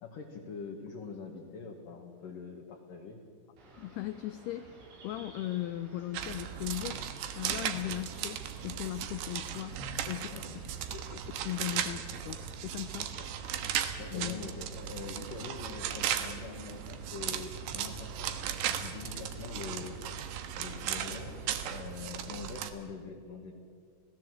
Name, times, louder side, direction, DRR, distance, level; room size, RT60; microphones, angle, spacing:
voice 1, 0.0-3.2 10.1-10.4 13.0-13.3 14.0-20.0 20.6-23.5, left 5 dB, 55° left, 0 dB, 3.0 m, -44 dB
sound 1, 3.6-21.7, right 2 dB, 90° right, 7.6 m, -54 dB
voice 2, 3.8-4.8 5.0-7.0 7.4-9.8 10.1-10.3 10.5-12.4 12.6-13.1 14.1-14.4, left 14 dB, 85° left, 12 dB, 2.3 m, -38 dB
sound 2, 6.1-22.7, right 9 dB, 70° right, 3.2 m, -37 dB
30.0 x 17.5 x 8.0 m, 2.1 s
omnidirectional pair, 5.5 m